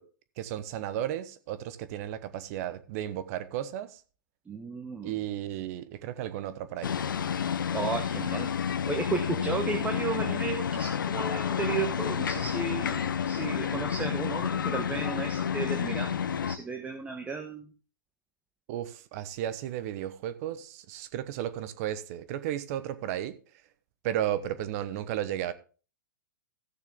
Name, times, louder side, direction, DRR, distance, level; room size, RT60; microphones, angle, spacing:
voice 1, 0.4-4.0 5.0-6.9 18.7-23.3 24.0-25.5, right 11 dB, 50° right, 1.1 m, -34 dB
voice 2, 4.5-5.1 7.7-8.5 8.9-16.2 16.5-17.7, right 4 dB, 10° right, 1.2 m, -34 dB
sound 1, 6.8-16.6, left 8 dB, 75° left, 0.9 m, -30 dB
15.0 x 6.7 x 3.7 m
hypercardioid pair, 120°, 11 cm